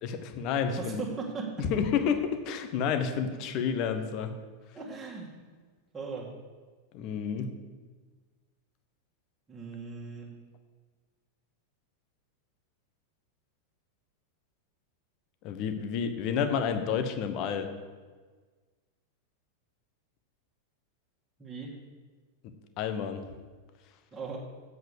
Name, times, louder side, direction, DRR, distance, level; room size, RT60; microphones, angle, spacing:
voice 1, 0.0-1.0 1.6-4.3 6.9-7.5 15.4-17.7 22.8-23.2, left 7 dB, 40° left, 8 dB, 1.0 m, -30 dB
voice 2, 0.8-1.5 4.7-5.3 5.9-6.3 9.5-10.3 21.4-21.7 24.1-24.4, right 4 dB, 15° right, -4 dB, 2.1 m, -38 dB
7.9 x 6.9 x 6.8 m, 1.4 s
figure-of-eight pair, 90°, 0 cm